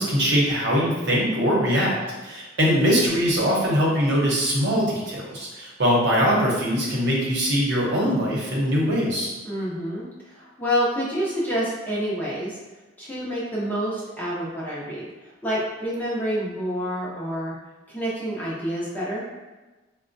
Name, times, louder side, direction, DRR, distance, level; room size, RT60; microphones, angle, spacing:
voice 1, 0.0-2.0 2.2-9.3, equal, 60° right, -4 dB, 0.9 m, -22 dB
voice 2, 9.4-12.6 13.0-17.6 17.9-19.2, equal, 10° left, -7 dB, 0.6 m, -28 dB
4.1 x 2.2 x 2.5 m, 1.2 s
head